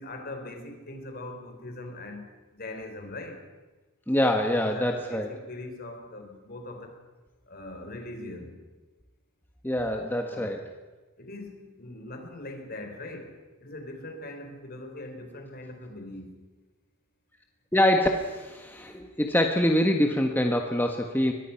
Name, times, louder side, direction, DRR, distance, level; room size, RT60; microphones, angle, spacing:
voice 1, 0.0-2.3 2.5-3.4 4.6-7.0 7.5-8.6 10.3-10.6 11.2-13.3 13.6-16.4, left 2 dB, 45° left, 5 dB, 3.9 m, -41 dB
voice 2, 4.1-5.3 9.6-10.7 17.7-21.3, left 1 dB, 10° left, 3 dB, 1.3 m, -25 dB
23.5 x 20.5 x 5.8 m, 1.2 s
head